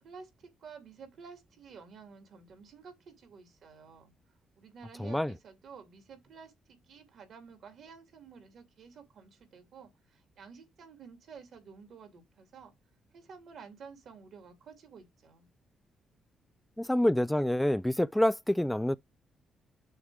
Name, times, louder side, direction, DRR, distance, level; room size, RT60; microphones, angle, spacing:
voice 1, 0.0-4.1 4.6-12.7 13.1-15.5, right 6 dB, 65° right, 2.5 m, -51 dB
voice 2, 5.0-5.3 16.8-19.0, left 1 dB, 10° left, 0.3 m, -27 dB
6.5 x 3.1 x 4.7 m
hypercardioid pair, 45°, 0 cm